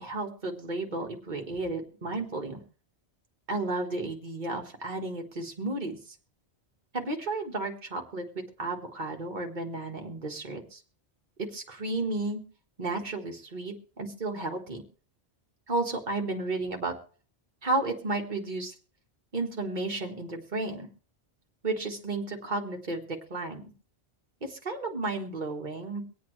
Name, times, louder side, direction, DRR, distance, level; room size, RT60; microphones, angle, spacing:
voice 1, 0.0-2.6 3.5-6.2 6.9-10.8 11.4-12.4 12.8-14.8 15.7-16.9 17.6-18.7 19.3-20.9 21.6-23.7 24.4-26.0, right 2 dB, 45° right, 2 dB, 1.8 m, -33 dB
24.5 x 8.6 x 3.2 m, 0.42 s
omnidirectional pair, 1.1 m